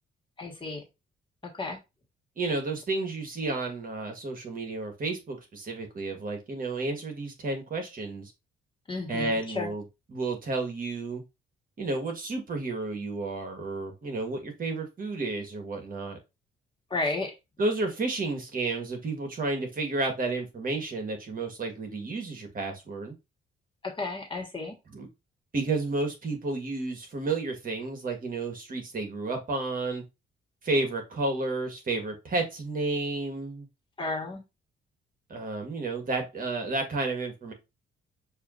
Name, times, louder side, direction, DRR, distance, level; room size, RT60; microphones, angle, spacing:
voice 1, 0.4-0.8 1.4-1.8 8.9-9.7 16.9-17.3 23.8-24.7 34.0-34.4, left 3 dB, 25° left, 1.5 m, -32 dB
voice 2, 2.4-8.3 9.1-9.8 10.1-11.2 11.8-16.2 17.6-23.1 24.9-25.1 25.5-30.0 30.6-33.7 35.3-37.5, right 3 dB, 45° right, 1.5 m, -31 dB
6.5 x 2.7 x 2.5 m
cardioid pair, 90°, 20 cm